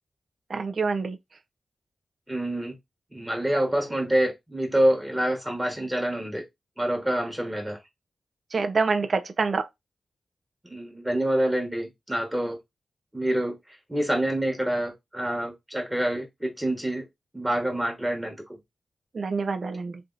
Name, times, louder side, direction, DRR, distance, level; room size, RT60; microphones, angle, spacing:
voice 1, 0.5-1.2 8.5-9.7 19.1-20.0, right 4 dB, 55° right, 0.6 m, -26 dB
voice 2, 2.3-2.7 3.1-6.4 6.8-7.8 10.7-12.6 13.1-13.6 13.9-17.0 17.3-18.6, right 1 dB, 10° right, 1.3 m, -26 dB
3.4 x 2.7 x 3.9 m
wide cardioid pair, 80°, 0 cm